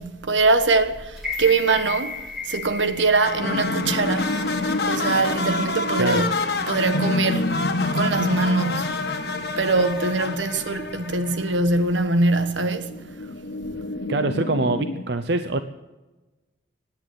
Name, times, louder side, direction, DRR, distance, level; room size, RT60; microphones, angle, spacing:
voice 1, 0.0-2.2 2.5-4.3 4.9-6.4 6.7-7.5 7.8-9.0 9.6-13.0, right 3 dB, 85° right, 1.3 m, -22 dB
sound 1, 1.2-5.3 5.7-5.8, left 4 dB, 5° right, 3.3 m, -35 dB
sound 2, 3.2-11.7, left 3 dB, 55° left, 1.8 m, -29 dB
sound 3, 3.4-15.0, left 2 dB, 85° left, 1.1 m, -30 dB
voice 2, 6.0-6.3 14.1-15.6, right 2 dB, 65° right, 0.7 m, -24 dB
16.5 x 10.5 x 7.9 m
head